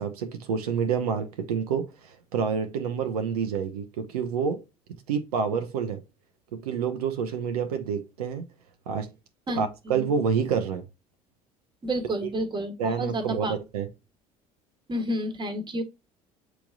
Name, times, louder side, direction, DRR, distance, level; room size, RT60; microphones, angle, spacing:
voice 1, 0.0-4.6 5.1-6.0 6.5-8.5 8.9-9.1 9.6-10.8 12.8-13.9, right 6 dB, 80° right, 0.7 m, -28 dB
voice 2, 9.5-10.1 11.8-13.5 14.9-15.8, right 1 dB, 25° right, 1.3 m, -30 dB
6.9 x 3.1 x 2.3 m
hypercardioid pair, 65°, 19 cm